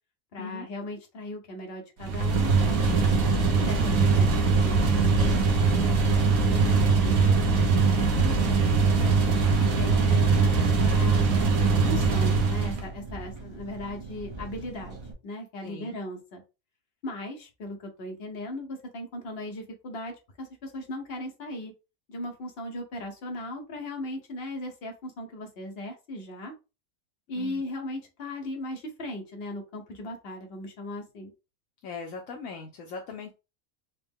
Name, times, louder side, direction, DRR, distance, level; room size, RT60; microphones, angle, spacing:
voice 1, 0.3-3.0 3.6-9.2 9.6-11.4 11.8-15.0 15.2-16.4 17.0-21.7 22.1-26.5 27.3-31.3, left 1 dB, 50° left, 3 dB, 1.1 m, -38 dB
sound 1, 2.0-12.9, right 4 dB, 80° right, 1.1 m, -22 dB
Engine, 4.5-15.1, right 3 dB, 30° right, 0.6 m, -42 dB
voice 2, 15.6-16.0 27.3-27.6 31.8-33.3, left 5 dB, 75° left, 3 dB, 1.0 m, -39 dB
4.3 x 2.0 x 3.5 m, 0.29 s
omnidirectional pair, 1.4 m